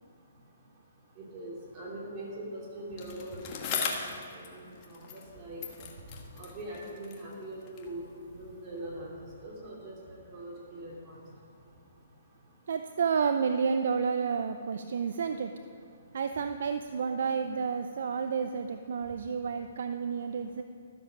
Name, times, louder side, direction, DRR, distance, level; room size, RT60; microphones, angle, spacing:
voice 1, 1.3-5.9 6.4-8.0 8.4-9.1 9.4-9.9 10.3-11.2, right 1 dB, 30° right, -4 dB, 2.7 m, -42 dB
Bicycle, 3.0-5.3 5.6-8.0 8.8-8.9, left 6 dB, 35° left, 1.5 m, -39 dB
voice 2, 12.7-15.5 16.1-20.6, right 6 dB, 65° right, 8 dB, 0.5 m, -30 dB
12.5 x 7.2 x 6.3 m, 2.4 s
hypercardioid pair, 145°, 0 cm